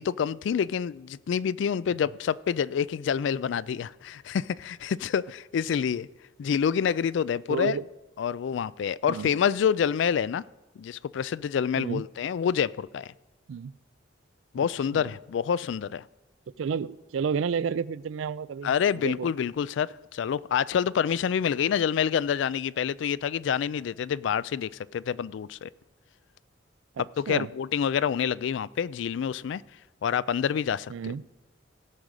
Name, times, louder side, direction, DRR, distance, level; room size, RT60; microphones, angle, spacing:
voice 1, 0.0-6.1 6.4-7.8 8.2-10.4 10.8-13.1 14.5-16.0 18.6-25.7 27.0-29.6 30.0-31.1, left 7 dB, 70° left, 0.3 m, -27 dB
voice 2, 7.5-7.8 9.1-9.3 11.8-12.0 13.5-13.7 14.9-15.1 16.6-19.3 27.0-27.5 30.9-31.2, right 6 dB, 80° right, 0.4 m, -31 dB
17.0 x 6.5 x 4.8 m
head